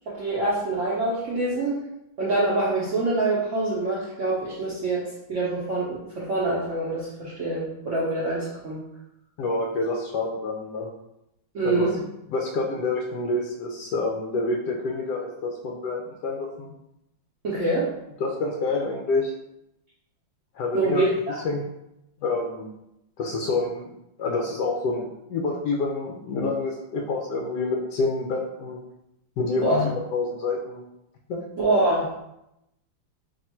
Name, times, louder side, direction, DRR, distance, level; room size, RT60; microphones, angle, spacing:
voice 1, 0.1-1.7 2.2-8.8 11.5-11.9 17.4-17.9 20.7-21.3 29.6-29.9 31.6-32.1, right 2 dB, 85° right, -7 dB, 0.6 m, -25 dB
voice 2, 9.4-10.9 11.6-11.9 12.3-16.7 18.2-19.3 20.5-21.1 21.4-21.6 22.2-22.7 23.2-23.9 24.2-28.8 29.4-30.9 31.3-31.4, left 3 dB, 80° left, 0 dB, 0.9 m, -27 dB
3.5 x 2.5 x 4.3 m, 0.85 s
omnidirectional pair, 2.3 m